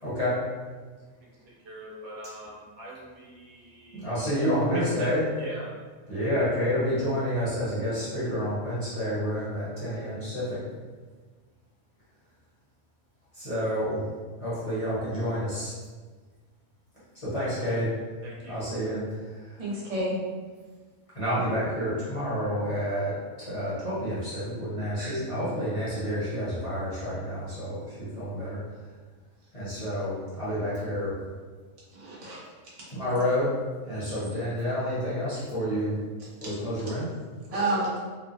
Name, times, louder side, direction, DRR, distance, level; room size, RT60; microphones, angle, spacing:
voice 1, 0.0-0.3 3.9-5.3 6.1-10.6 13.3-14.0 14.4-15.7 17.2-17.9 18.5-19.0 21.1-23.1 23.4-28.6 29.5-31.1 32.9-33.5 33.9-36.0 36.4-37.1, equal, 30° left, -12 dB, 0.8 m, -29 dB
voice 2, 1.2-4.3 4.7-5.1 5.4-5.7 18.2-18.6, right 1 dB, 85° right, -5 dB, 1.2 m, -41 dB
voice 3, 19.6-20.2 25.0-25.2 31.9-32.4 36.2-36.3 37.5-38.0, right 1 dB, 35° right, -6 dB, 0.6 m, -30 dB
3.1 x 2.0 x 2.5 m, 1.4 s
omnidirectional pair, 1.5 m